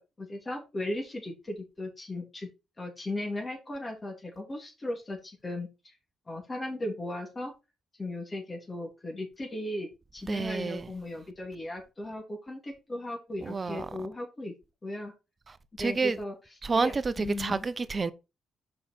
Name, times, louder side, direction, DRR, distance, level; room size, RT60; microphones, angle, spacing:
voice 1, 0.2-2.5 2.8-5.9 6.3-7.5 8.0-14.5 14.8-15.1 15.8-16.3 16.7-17.7, left 1 dB, 30° left, 2.8 m, -37 dB
voice 2, 10.3-10.9 13.4-13.9 15.8-16.2 16.6-18.1, right 4 dB, 40° right, 0.7 m, -29 dB
6.2 x 5.8 x 4.4 m
hypercardioid pair, 50°, 0 cm